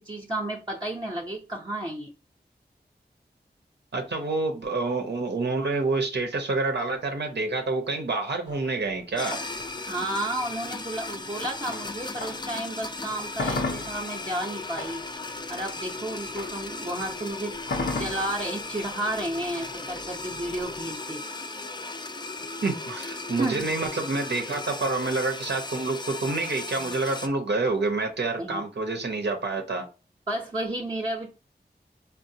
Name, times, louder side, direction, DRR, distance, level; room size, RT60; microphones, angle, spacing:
voice 1, 0.0-2.1 9.8-15.0 15.5-21.2 23.4-23.7 28.4-28.6 30.3-31.3, right 1 dB, 25° right, 0.6 m, -32 dB
voice 2, 3.9-9.4 22.6-29.9, right 3 dB, 80° right, 0.6 m, -28 dB
sound 1, 8.5-12.6 13.0-20.9, left 3 dB, 90° left, 0.7 m, -36 dB
sound 2, 9.2-27.3, left 3 dB, 25° left, 0.3 m, -37 dB
3.9 x 2.0 x 2.6 m
cardioid pair, 45°, 17 cm